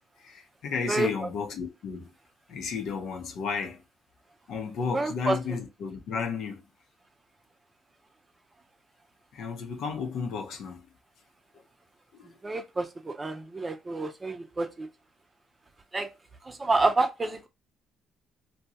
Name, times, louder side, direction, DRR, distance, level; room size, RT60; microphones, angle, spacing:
voice 1, 0.2-2.1 2.5-3.8 4.5-6.7 9.3-10.9 11.5-11.6 12.1-12.4, left 5 dB, 70° left, 0.7 m, -33 dB
voice 2, 4.9-5.4 12.2-14.9 15.9-16.1 16.4-17.5, right 2 dB, 30° right, 0.6 m, -28 dB
2.7 x 2.2 x 2.8 m
supercardioid pair, 60°, 0 cm